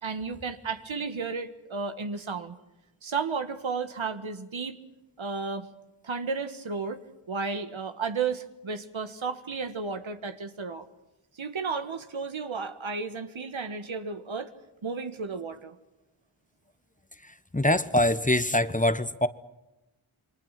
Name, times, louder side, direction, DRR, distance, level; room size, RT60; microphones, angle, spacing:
voice 1, 0.0-2.6 3.0-4.8 5.2-5.7 6.0-7.0 7.3-10.9 11.4-14.5 14.8-15.8, right 4 dB, 70° right, 9 dB, 1.8 m, -33 dB
voice 2, 17.5-19.3, left 1 dB, 15° left, 13 dB, 1.2 m, -23 dB
28.0 x 22.5 x 5.9 m, 0.97 s
cardioid pair, 55°, 49 cm